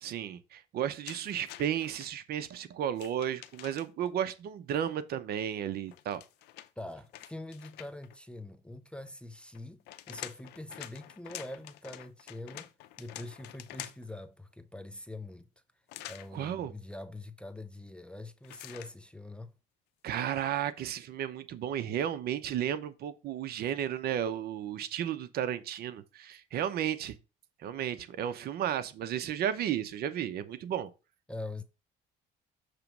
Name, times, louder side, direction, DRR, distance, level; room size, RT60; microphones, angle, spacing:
voice 1, 0.0-6.2 16.3-16.7 20.0-27.1 27.6-30.9, right 10 dB, 65° right, 0.8 m, -33 dB
sound 1, 1.0-2.1 2.9-4.1 5.9-8.2 9.5-14.2 15.9-16.3 18.4-18.9, left 14 dB, 85° left, 0.5 m, -47 dB
voice 2, 6.8-15.5 16.1-19.5 31.3-31.6, left 2 dB, 5° left, 0.5 m, -44 dB
6.7 x 3.1 x 5.9 m
cardioid pair, 110°, 17 cm